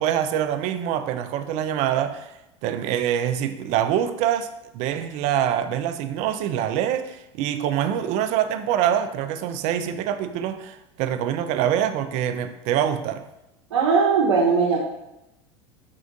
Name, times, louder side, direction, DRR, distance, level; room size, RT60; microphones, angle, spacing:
voice 1, 0.0-4.5 4.7-13.2, right 10 dB, 50° right, 0.4 m, -25 dB
voice 2, 13.7-14.8, right 5 dB, 85° right, 0.7 m, -19 dB
3.6 x 2.5 x 3.6 m
hypercardioid pair, 100°, 15 cm